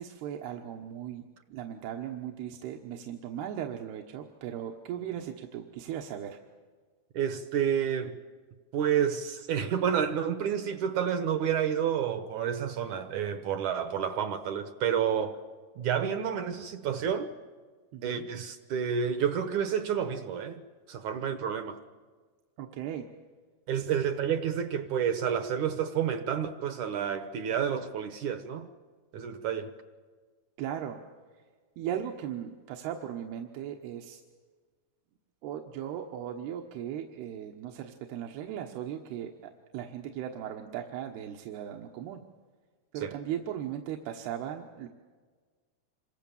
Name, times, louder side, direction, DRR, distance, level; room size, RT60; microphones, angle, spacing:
voice 1, 0.0-6.4 17.9-18.3 22.6-23.1 23.7-23.9 30.6-31.0 31.8-34.2 35.4-42.2 42.9-44.9, right 10 dB, 85° right, 3.2 m, -37 dB
voice 2, 7.1-8.2 8.7-15.4 15.8-17.3 18.0-20.6 20.9-21.8 23.7-28.7 29.1-29.7 43.0-43.1, right 8 dB, 70° right, 2.0 m, -30 dB
27.0 x 24.5 x 7.2 m
omnidirectional pair, 4.5 m